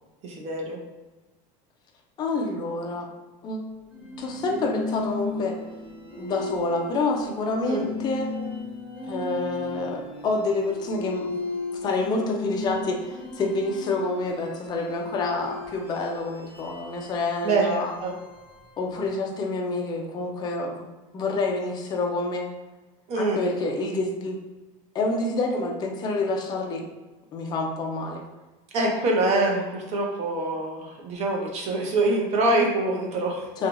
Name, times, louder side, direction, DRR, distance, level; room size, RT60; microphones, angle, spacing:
voice 1, 0.2-0.8 7.7-7.9 17.4-18.1 23.1-23.4 28.7-33.5, right 2 dB, 40° right, 1 dB, 0.6 m, -25 dB
voice 2, 2.2-3.1 3.4-3.8 4.2-5.6 6.1-8.3 9.1-11.3 11.8-17.9 18.8-20.9 21.1-22.5 23.2-24.4 24.9-26.8 27.3-28.2 33.6-33.7, left 3 dB, 25° left, 1 dB, 0.4 m, -28 dB
sound 1, 3.9-19.0, left 2 dB, 10° right, 1.0 m, -36 dB
3.0 x 2.3 x 2.5 m, 1.1 s
supercardioid pair, 145°, 17 cm